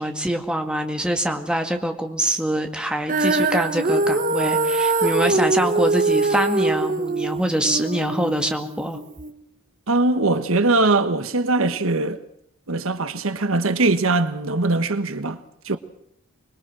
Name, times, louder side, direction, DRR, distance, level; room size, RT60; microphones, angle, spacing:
voice 1, 0.0-9.0, right 1 dB, 5° right, 2.1 m, -24 dB
Female singing, 3.1-9.3, right 3 dB, 40° right, 1.1 m, -22 dB
voice 2, 9.9-12.2 12.7-15.4 15.6-15.8, right 2 dB, 75° right, 1.3 m, -21 dB
26.0 x 21.5 x 6.3 m
head